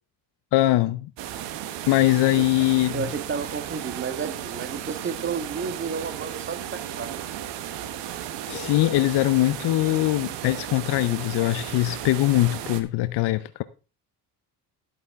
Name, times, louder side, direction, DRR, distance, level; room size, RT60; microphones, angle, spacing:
voice 1, 0.5-1.1 1.9-3.1 8.5-13.6, left 16 dB, 70° left, 0.6 m, -22 dB
sound 1, 1.2-12.8, right 11 dB, 80° right, 1.2 m, -35 dB
voice 2, 2.9-7.2, right 5 dB, 30° right, 1.4 m, -32 dB
11.5 x 8.5 x 3.6 m
cardioid pair, 100°, 41 cm